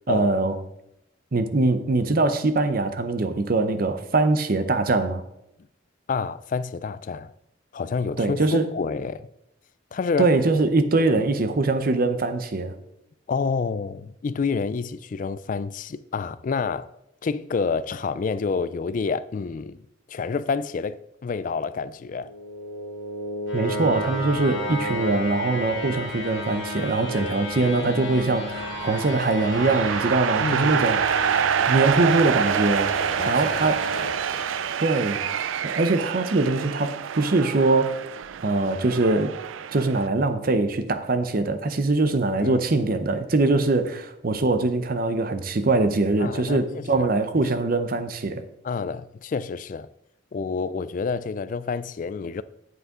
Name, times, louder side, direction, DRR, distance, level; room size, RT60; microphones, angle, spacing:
voice 1, 0.1-0.6 1.3-5.2 8.2-8.7 10.2-12.7 23.5-31.2 31.7-32.9 33.3-33.9 34.8-35.3 35.6-38.0 38.4-39.3 39.7-48.4, right 3 dB, 50° right, 0.7 m, -22 dB
voice 2, 6.1-7.3 7.7-8.4 8.7-9.3 9.9-10.3 13.3-16.9 17.2-19.8 20.1-22.3 30.4-30.8 33.0-34.1 42.4-42.6 46.2-46.6 46.9-47.1 48.6-49.9 50.3-52.4, left 5 dB, 45° left, 0.3 m, -28 dB
sound 1, 22.1-35.2, equal, 80° left, 2.6 m, -33 dB
sound 2, 28.5-40.1, right 8 dB, 90° right, 0.4 m, -27 dB
8.1 x 7.7 x 3.7 m
head